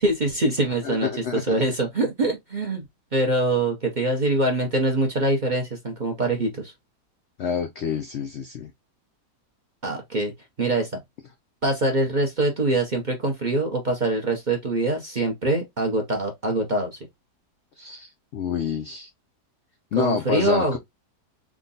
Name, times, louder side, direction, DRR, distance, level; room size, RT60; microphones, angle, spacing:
voice 1, 0.0-2.9 3.1-6.7 9.8-10.3 10.6-11.0 11.6-17.0 20.0-20.8, right 2 dB, 40° right, 0.6 m, -24 dB
voice 2, 0.8-1.6 7.4-8.7 17.8-19.1 19.9-20.8, left 7 dB, 85° left, 0.6 m, -28 dB
3.6 x 2.2 x 3.8 m
omnidirectional pair, 1.8 m